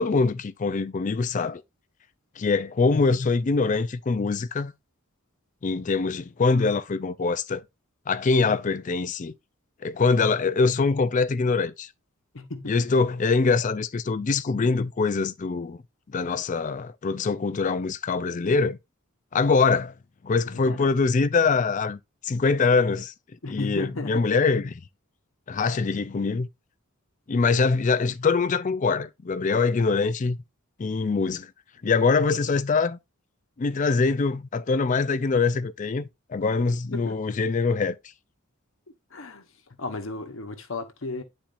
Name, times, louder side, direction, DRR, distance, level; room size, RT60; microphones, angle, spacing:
voice 1, 0.0-1.6 2.4-4.7 5.6-7.6 8.1-9.3 9.8-11.9 12.7-15.8 16.1-18.8 19.3-19.9 20.2-23.1 23.5-24.8 25.5-26.5 27.3-30.4 30.8-31.5 31.8-33.0 33.6-38.0, left 4 dB, 35° left, 0.4 m, -23 dB
voice 2, 12.3-12.8 20.5-20.9 23.4-24.3 36.9-37.2 39.1-39.5 39.8-41.2, left 3 dB, 65° left, 1.0 m, -34 dB
10.5 x 4.3 x 2.5 m
head